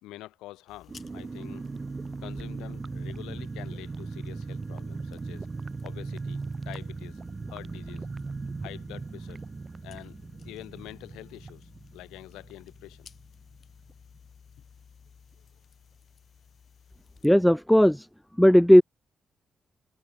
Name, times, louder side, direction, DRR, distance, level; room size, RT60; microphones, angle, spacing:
voice 1, 0.0-1.8 2.2-5.5 5.8-7.2 7.5-8.1 8.6-9.4 9.8-13.1, left 17 dB, 85° left, 2.6 m, -46 dB
sound 1, 0.7-17.3, left 7 dB, 60° left, 5.7 m, -55 dB
sound 2, 0.9-13.2 13.5-13.6 13.9-14.2, right 4 dB, 35° right, 0.6 m, -38 dB
voice 2, 17.2-18.0 18.4-18.8, equal, 5° left, 0.4 m, -16 dB
supercardioid pair, 50°, 0 cm